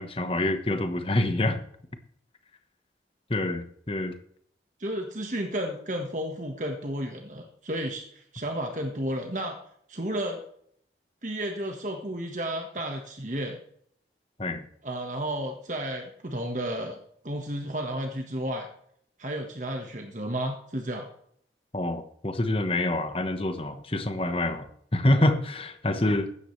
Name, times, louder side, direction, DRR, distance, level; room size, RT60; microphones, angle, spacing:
voice 1, 0.0-1.6 3.3-4.2 14.4-14.7 21.7-26.3, left 1 dB, 30° left, 8 dB, 1.2 m, -26 dB
voice 2, 4.8-9.6 9.9-10.4 11.2-13.6 14.8-17.0 17.2-18.7 19.2-21.1, right 1 dB, 45° right, 3 dB, 1.5 m, -32 dB
16.0 x 12.5 x 3.3 m, 0.67 s
head